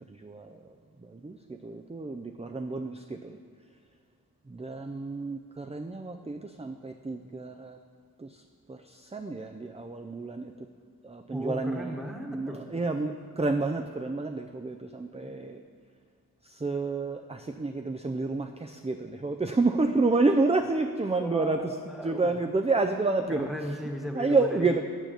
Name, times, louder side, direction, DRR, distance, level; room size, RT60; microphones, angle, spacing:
voice 1, 0.1-3.4 4.5-7.8 8.2-8.4 8.7-10.7 11.0-12.0 12.3-15.6 16.4-21.7 22.0-23.5 24.1-24.8, right 3 dB, 15° right, 5 dB, 0.4 m, -29 dB
voice 2, 11.3-12.6 15.2-15.3 21.2-22.3 23.3-24.8, equal, ahead, 2 dB, 1.3 m, -36 dB
8.1 x 6.3 x 6.7 m, 2.2 s
wide cardioid pair, 45°, 38 cm